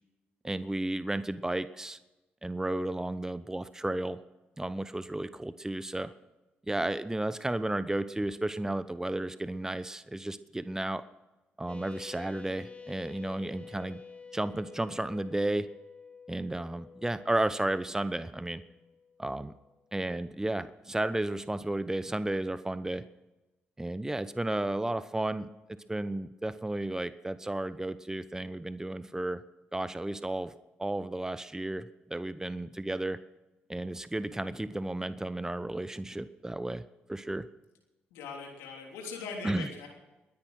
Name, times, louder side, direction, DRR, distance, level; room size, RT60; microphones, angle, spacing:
voice 1, 0.4-2.0 2.4-4.2 4.6-6.1 6.7-11.0 11.6-14.0 14.3-15.7 16.3-18.6 19.2-19.5 19.9-23.0 23.8-25.5 25.9-29.4 29.7-30.5 30.8-33.2 33.7-36.8 37.1-37.5 39.4-39.7, right 1 dB, 10° right, 14 dB, 0.8 m, -33 dB
sound 1, 11.7-19.7, left 5 dB, 25° left, 2.8 m, -50 dB
voice 2, 38.1-39.9, left 4 dB, 85° left, 1 dB, 3.2 m, -40 dB
22.0 x 10.0 x 6.3 m, 1.1 s
hypercardioid pair, 50°, 5 cm